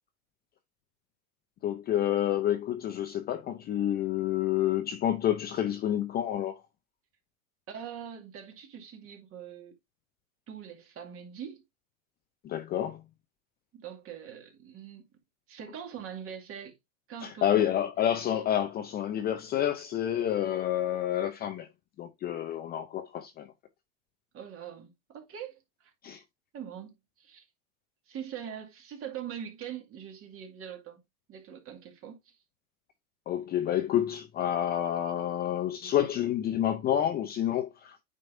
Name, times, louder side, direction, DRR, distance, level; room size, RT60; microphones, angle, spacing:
voice 1, 1.6-6.6 12.4-13.0 17.2-21.7 22.0-23.5 26.0-26.2 33.3-38.0, left 11 dB, 20° left, 0.6 m, -29 dB
voice 2, 7.7-9.7 10.5-11.6 13.7-15.0 15.5-16.8 17.1-17.7 24.3-25.9 26.5-27.5 28.1-31.0 31.3-32.3, right 8 dB, 30° right, 2.3 m, -43 dB
8.9 x 5.3 x 2.6 m
hypercardioid pair, 130°, 43 cm